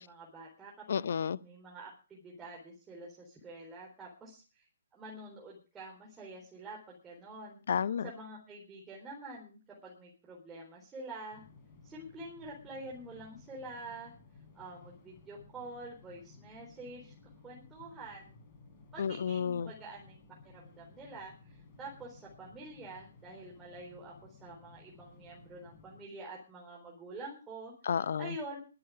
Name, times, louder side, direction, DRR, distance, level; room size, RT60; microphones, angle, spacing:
voice 1, 0.0-1.0 1.4-4.6 4.9-7.6 8.0-11.4 11.8-14.1 14.5-17.1 17.4-18.4 18.9-20.2 20.5-27.7 28.2-28.6, right 2 dB, 15° right, 4.2 m, -47 dB
voice 2, 0.9-1.4 7.7-8.1 19.0-19.7 27.9-28.3, left 7 dB, 55° left, 0.6 m, -31 dB
sound 1, 11.3-26.0, left 4 dB, 30° left, 4.6 m, -57 dB
23.0 x 7.9 x 5.0 m
figure-of-eight pair, 130°, 0 cm